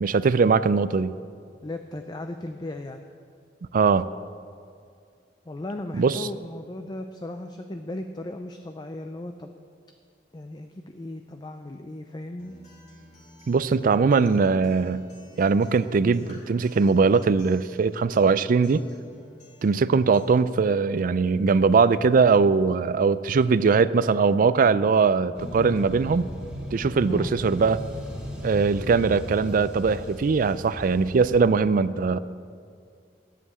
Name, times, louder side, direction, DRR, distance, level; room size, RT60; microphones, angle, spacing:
voice 1, 0.0-1.2 3.7-4.1 5.9-6.3 13.5-15.1 15.4-18.8 19.6-26.3 26.7-27.8 28.4-32.2, right 5 dB, 50° right, 16 dB, 0.4 m, -21 dB
voice 2, 1.6-3.0 5.5-9.5 10.3-12.6 27.1-27.3, left 1 dB, 25° left, 6 dB, 0.5 m, -36 dB
Acoustic guitar, 12.4-20.4, left 1 dB, 45° left, 3.5 m, -53 dB
sound 1, 25.3-31.4, equal, 5° right, 2.6 m, -37 dB
11.0 x 7.6 x 8.5 m, 2.3 s
head